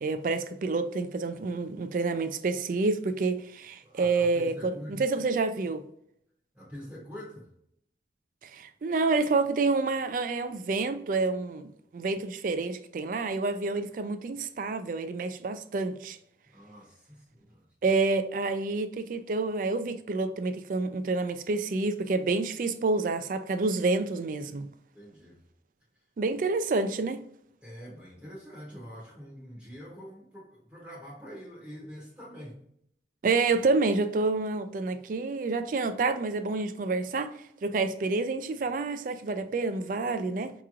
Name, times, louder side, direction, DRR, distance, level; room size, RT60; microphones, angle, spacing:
voice 1, 0.0-5.8 8.4-16.2 17.8-24.7 26.2-27.2 33.2-37.3 37.6-40.5, right 3 dB, 45° right, 0.3 m, -28 dB
voice 2, 3.8-5.0 6.5-7.5 16.5-17.7 24.9-25.4 27.6-32.6, equal, 10° right, 0.8 m, -45 dB
4.8 x 2.9 x 2.4 m
head